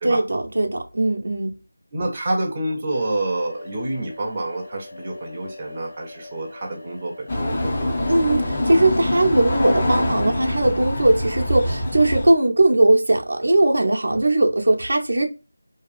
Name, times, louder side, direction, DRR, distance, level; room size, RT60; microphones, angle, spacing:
voice 1, 0.0-1.5 8.1-15.3, right 2 dB, 70° right, 0.6 m, -19 dB
voice 2, 1.9-8.0, right 1 dB, 25° right, 0.6 m, -28 dB
sound 1, 2.9-9.0, left 2 dB, 55° left, 1.3 m, -42 dB
sound 2, 7.3-12.3, left 1 dB, 30° left, 0.7 m, -24 dB
2.7 x 2.3 x 2.4 m
figure-of-eight pair, 170°, 0 cm